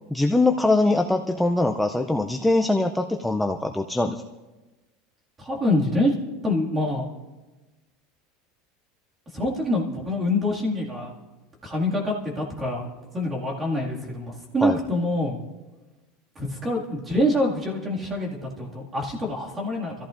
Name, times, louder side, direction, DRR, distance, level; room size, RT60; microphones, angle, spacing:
voice 1, 0.1-4.2 14.6-14.8, left 2 dB, 5° left, 5 dB, 0.4 m, -22 dB
voice 2, 5.4-7.1 9.3-11.1 11.6-12.9 13.1-15.4 16.4-19.9, left 1 dB, 15° right, -2 dB, 2.1 m, -25 dB
26.5 x 14.5 x 2.5 m, 1.2 s
supercardioid pair, 165°, 0 cm